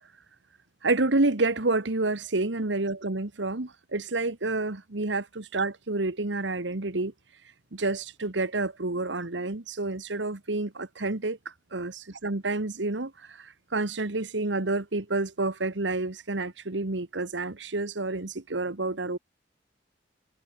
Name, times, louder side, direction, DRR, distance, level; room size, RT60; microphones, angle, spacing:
voice 1, 0.8-7.1 7.7-11.4 11.7-19.2, right 2 dB, 85° right, 1.6 m, -29 dB
head